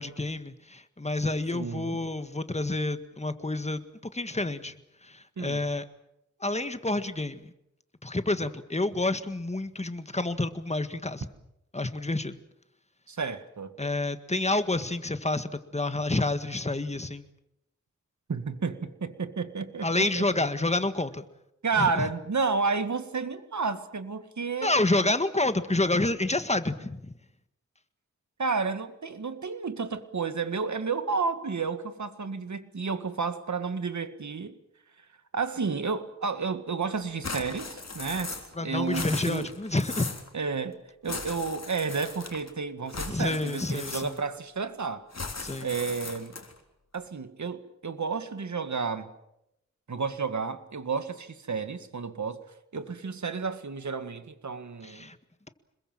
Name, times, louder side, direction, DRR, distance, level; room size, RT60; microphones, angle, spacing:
voice 1, 0.0-3.8 4.1-4.7 5.0-5.9 6.4-7.5 8.0-11.3 11.7-12.3 13.8-17.3 19.8-21.2 21.8-22.1 24.6-27.1 38.6-40.2 43.1-44.1 45.4-45.7 54.8-55.2, left 2 dB, 20° left, 1.7 m, -29 dB
voice 2, 1.5-2.0 5.4-5.6 13.1-13.7 18.3-20.2 21.6-24.8 28.4-34.5 35.3-39.5 40.3-40.8 41.0-45.1 45.6-46.4 46.9-49.1 49.9-52.4 52.7-55.0, right 5 dB, 70° right, 1.9 m, -31 dB
sound 1, 37.2-38.6 38.8-40.3 41.0-42.5 42.9-44.4 45.1-46.6, left 4 dB, 60° left, 3.7 m, -38 dB
26.5 x 21.5 x 7.6 m
wide cardioid pair, 90°, 30 cm